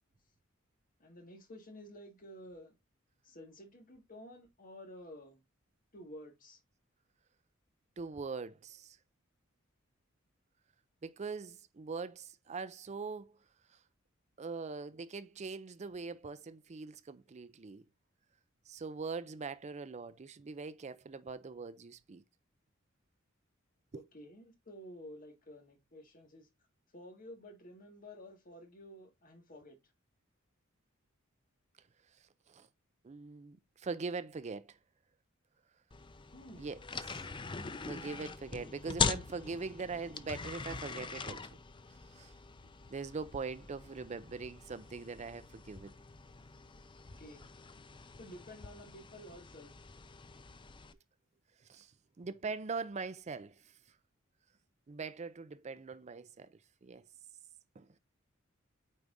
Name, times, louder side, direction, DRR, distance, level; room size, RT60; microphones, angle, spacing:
voice 1, 1.0-2.8 3.2-5.4 5.9-6.6 23.9-26.5 26.9-29.8 36.3-36.7 47.1-47.5 48.1-49.7, equal, 45° left, 1.8 m, -52 dB
voice 2, 8.0-9.0 11.0-13.3 14.4-17.8 18.7-22.2 23.9-24.0 32.5-32.7 33.0-34.8 36.6-36.8 37.1-37.2 37.9-41.5 42.1-42.3 42.9-45.9 51.7-51.9 52.2-53.5 54.9-56.5 56.8-57.0 57.8-57.9, right 4 dB, 35° right, 0.4 m, -42 dB
sound 1, 35.9-50.9, left 5 dB, 25° left, 0.5 m, -42 dB
8.6 x 4.7 x 2.6 m
head